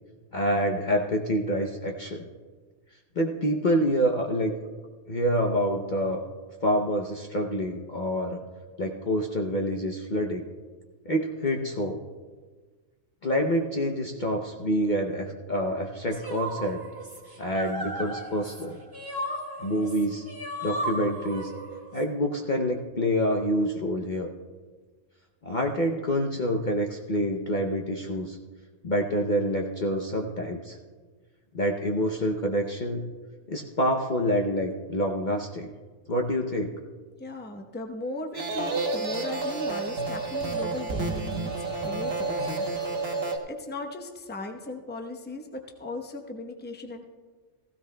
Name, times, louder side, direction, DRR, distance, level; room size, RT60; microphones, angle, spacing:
voice 1, 0.3-2.3 3.2-4.5 5.1-6.2 6.6-8.4 8.8-10.4 11.1-12.0 13.2-16.8 17.4-18.8 19.6-20.3 20.6-21.5 21.9-24.3 25.4-28.4 28.8-30.8 31.5-33.1 33.5-35.7 36.1-36.8, equal, 45° left, 1 dB, 0.8 m, -27 dB
sound 1, 16.1-22.0, right 1 dB, 15° right, 1.6 m, -35 dB
voice 2, 37.2-42.7 43.5-47.1, left 2 dB, 10° left, 3 dB, 0.7 m, -37 dB
sound 2, 38.3-43.4, right 3 dB, 50° right, 1.3 m, -30 dB
16.0 x 16.0 x 2.2 m, 1.4 s
omnidirectional pair, 1.3 m